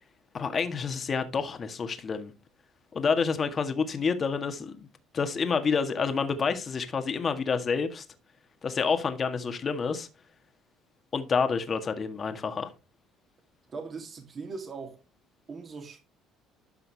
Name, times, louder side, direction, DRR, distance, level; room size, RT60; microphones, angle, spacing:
voice 1, 0.3-2.3 2.9-4.9 5.1-8.1 8.6-10.1 11.1-12.7, left 5 dB, 40° left, 1.7 m, -28 dB
voice 2, 13.7-15.0 15.5-16.0, right 4 dB, 40° right, 2.6 m, -39 dB
13.0 x 5.7 x 3.4 m
supercardioid pair, 80°, 0 cm